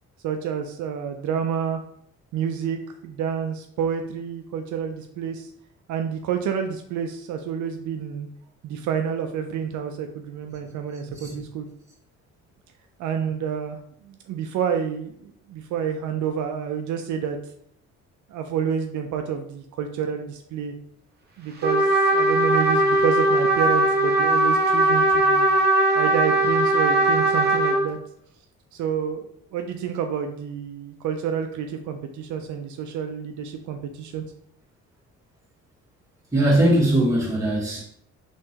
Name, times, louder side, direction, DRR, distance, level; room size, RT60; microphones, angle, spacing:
voice 1, 0.2-1.8 2.3-5.5 5.9-8.3 8.6-11.7 13.0-17.4 18.3-20.7 21.4-25.5 26.0-28.0 28.7-34.3, right 7 dB, 75° right, 5 dB, 0.5 m, -29 dB
Trumpet, 21.6-27.8, right 2 dB, 35° right, 0.7 m, -19 dB
voice 2, 36.3-37.8, right 1 dB, 10° right, -6 dB, 1.2 m, -20 dB
3.5 x 3.0 x 2.8 m, 0.68 s
cardioid pair, 90°, 30 cm